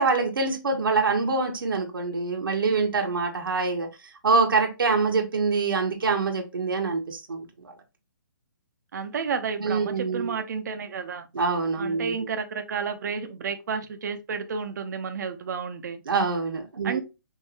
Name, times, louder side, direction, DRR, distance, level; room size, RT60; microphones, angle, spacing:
voice 1, 0.0-3.9 4.2-7.7 9.6-10.4 11.3-12.1 16.1-17.0, right 4 dB, 90° right, 1.5 m, -25 dB
voice 2, 8.9-11.3 11.8-16.0 16.8-17.0, right 6 dB, 60° right, 1.0 m, -31 dB
5.6 x 3.1 x 3.1 m
hypercardioid pair, 155°, 11 cm